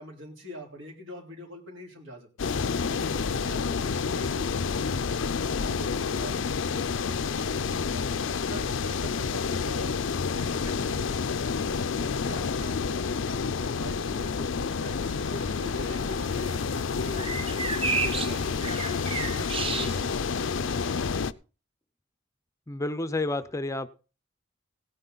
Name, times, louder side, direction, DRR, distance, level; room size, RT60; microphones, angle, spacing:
voice 1, 0.0-2.5 2.9-8.0 8.4-20.1, left 1 dB, 70° right, 3.7 m, -44 dB
sound 1, 2.4-21.3, left 5 dB, 70° left, 0.5 m, -29 dB
sound 2, 15.0-21.1, right 4 dB, 30° right, 0.6 m, -35 dB
voice 2, 22.7-23.9, left 2 dB, 15° left, 0.6 m, -30 dB
17.0 x 9.7 x 4.0 m
head